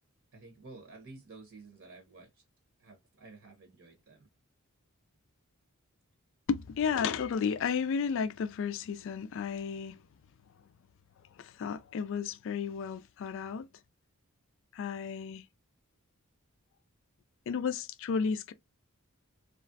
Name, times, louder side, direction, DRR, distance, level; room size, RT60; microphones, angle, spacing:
voice 1, 0.3-2.4 2.8-4.3, right 3 dB, 60° right, 0.8 m, -52 dB
voice 2, 6.5-10.0 11.4-13.7 14.7-15.4 17.5-18.5, left 6 dB, 60° left, 0.3 m, -33 dB
3.1 x 2.4 x 2.5 m
head